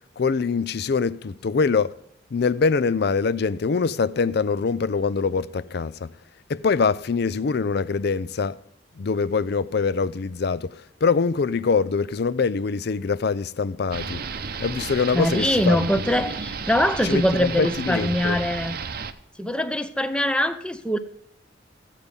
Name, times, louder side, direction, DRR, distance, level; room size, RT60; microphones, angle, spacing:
voice 1, 0.2-1.9 2.3-6.1 6.5-8.6 9.0-14.2 14.6-15.8 17.0-18.4, left 5 dB, 55° left, 0.4 m, -24 dB
sound 1, 13.9-19.1, right 5 dB, 50° right, 0.7 m, -33 dB
voice 2, 15.1-18.8 19.4-21.0, left 1 dB, 5° left, 0.6 m, -23 dB
14.5 x 8.3 x 5.2 m
head